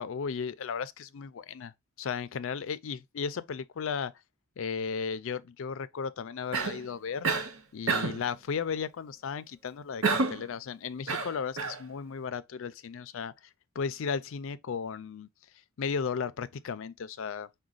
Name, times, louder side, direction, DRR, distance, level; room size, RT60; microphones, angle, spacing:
voice 1, 0.0-1.7 2.0-4.1 4.6-7.3 7.7-13.3 13.8-15.3 15.8-17.5, left 6 dB, 65° left, 0.4 m, -35 dB
Cough, 6.5-6.9 7.2-7.5 7.9-8.3 10.0-10.5 11.1-11.8, right 4 dB, 75° right, 0.8 m, -28 dB
6.0 x 2.2 x 3.8 m
head